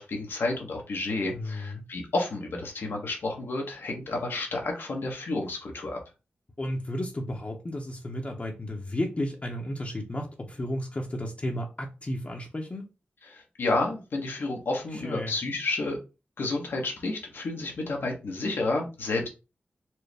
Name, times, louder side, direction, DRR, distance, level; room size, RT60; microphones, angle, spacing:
voice 1, 0.0-6.0 13.2-16.0 16.4-19.3, left 2 dB, 80° left, 1.1 m, -30 dB
voice 2, 1.3-1.8 6.6-12.8 14.9-15.3, left 1 dB, 40° left, 0.9 m, -33 dB
4.4 x 2.1 x 3.3 m
cardioid pair, 45°, 4 cm